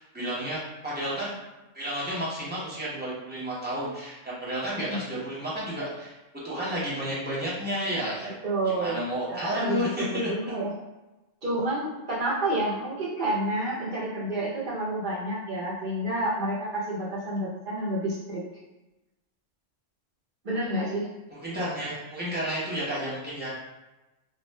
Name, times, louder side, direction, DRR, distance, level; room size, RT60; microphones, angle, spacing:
voice 1, 0.0-1.3 1.7-6.1 6.4-8.3 8.7-10.3 21.3-23.5, equal, 10° right, -8 dB, 0.8 m, -31 dB
voice 2, 8.4-9.0 9.3-10.7 11.4-18.4 20.4-21.1, right 1 dB, 45° right, -6 dB, 0.9 m, -29 dB
2.4 x 2.4 x 3.2 m, 1.1 s
omnidirectional pair, 1.3 m